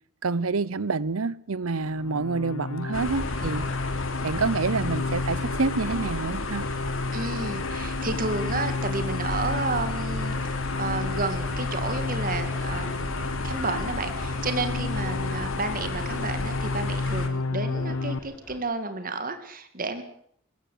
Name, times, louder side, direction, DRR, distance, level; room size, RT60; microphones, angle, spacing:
voice 1, 0.2-3.7 4.2-6.7, right 4 dB, 90° right, 0.8 m, -27 dB
sound 1, 1.9-18.2, left 3 dB, 85° left, 0.8 m, -32 dB
sound 2, 2.9-17.3, left 2 dB, 70° left, 2.9 m, -33 dB
voice 2, 7.1-20.0, right 3 dB, 40° right, 2.1 m, -31 dB
sound 3, 11.3-18.6, left 1 dB, 15° left, 3.6 m, -47 dB
21.0 x 16.5 x 8.3 m
head